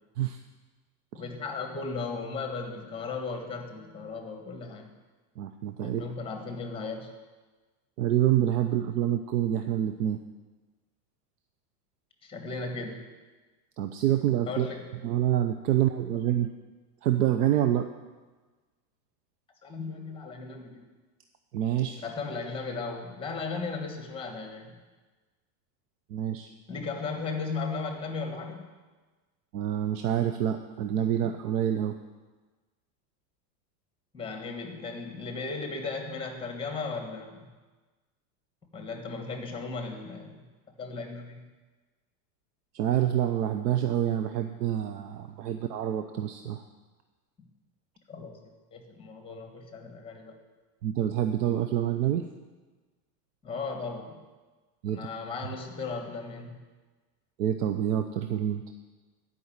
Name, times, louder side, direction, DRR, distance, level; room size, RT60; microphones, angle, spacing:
voice 1, 1.1-4.9 5.8-7.1 12.2-13.1 14.5-14.9 19.6-20.9 22.0-24.8 26.7-28.7 34.1-37.5 38.7-40.5 40.8-41.5 45.5-45.6 48.1-50.3 53.4-54.1 54.9-56.6, left 4 dB, 10° left, 4 dB, 1.5 m, -36 dB
voice 2, 5.4-6.0 8.0-10.2 13.8-14.7 15.0-16.5 17.0-17.9 21.5-22.0 26.1-26.5 29.5-31.9 42.7-46.6 50.8-52.3 54.8-55.0 57.4-58.7, right 11 dB, 75° right, 7 dB, 0.8 m, -27 dB
11.0 x 5.5 x 8.7 m, 1.3 s
supercardioid pair, 145°, 47 cm